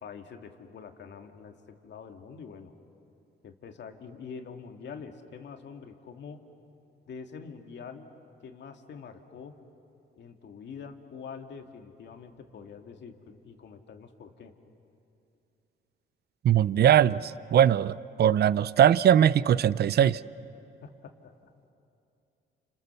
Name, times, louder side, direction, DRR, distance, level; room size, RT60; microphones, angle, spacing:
voice 1, 0.0-2.7 3.4-6.4 7.1-8.1 8.4-9.6 10.2-14.5 20.8-21.3, left 6 dB, 65° left, 5 dB, 2.1 m, -45 dB
voice 2, 16.4-20.2, right 10 dB, 55° right, 18 dB, 0.6 m, -21 dB
30.0 x 28.5 x 6.9 m, 2.7 s
cardioid pair, 90°, 20 cm